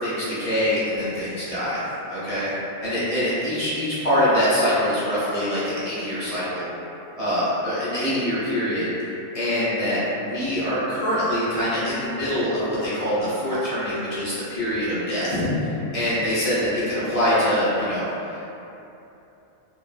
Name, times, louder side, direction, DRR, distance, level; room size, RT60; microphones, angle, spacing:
voice 1, 0.0-1.8 2.1-2.5 2.8-6.7 7.2-8.9 9.3-18.1, equal, 35° left, -11 dB, 0.7 m, -24 dB
2.6 x 2.4 x 2.5 m, 2.9 s
omnidirectional pair, 1.3 m